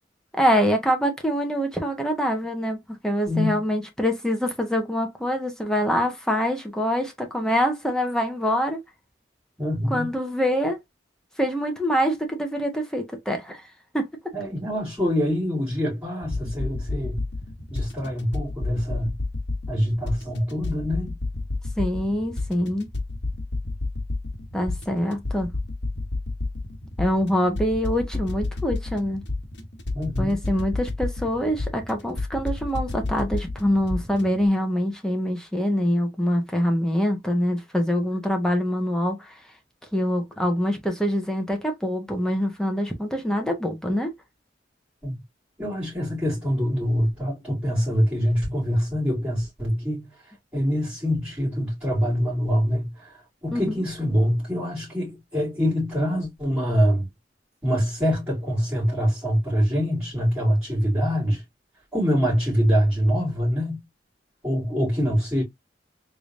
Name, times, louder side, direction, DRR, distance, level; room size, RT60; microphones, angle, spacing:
voice 1, 0.4-8.8 9.9-10.8 11.4-13.6 13.9-14.1 21.8-22.9 24.5-25.5 27.0-29.2 30.2-39.3 39.9-44.1 53.5-53.8, equal, 5° left, 0.9 m, -25 dB
voice 2, 3.3-3.6 9.6-10.1 14.3-17.2 17.7-19.1 19.7-21.2 29.9-30.4 45.0-45.1 45.6-50.1 50.5-57.1 57.6-61.4 61.9-63.8 64.4-65.4, equal, 15° right, 2.6 m, -24 dB
sound 1, 16.2-34.4, left 2 dB, 70° left, 1.1 m, -31 dB
3.8 x 3.3 x 2.5 m
head